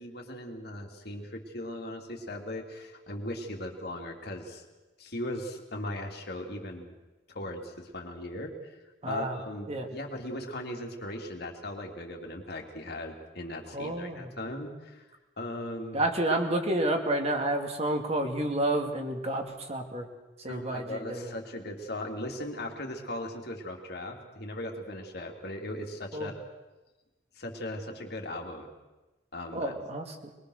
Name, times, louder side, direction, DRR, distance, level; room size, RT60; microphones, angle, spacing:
voice 1, 0.0-4.6 5.0-6.9 7.3-8.8 9.1-15.1 15.4-16.0 20.5-26.4 27.4-28.7 29.3-29.7, left 1 dB, 65° left, 2 dB, 3.1 m, -38 dB
voice 2, 9.0-9.4 9.7-9.9 13.7-14.3 15.9-20.1 20.4-21.3 26.1-26.3 29.5-30.3, right 1 dB, 35° right, 4 dB, 2.3 m, -30 dB
22.5 x 22.0 x 6.6 m, 1.1 s
head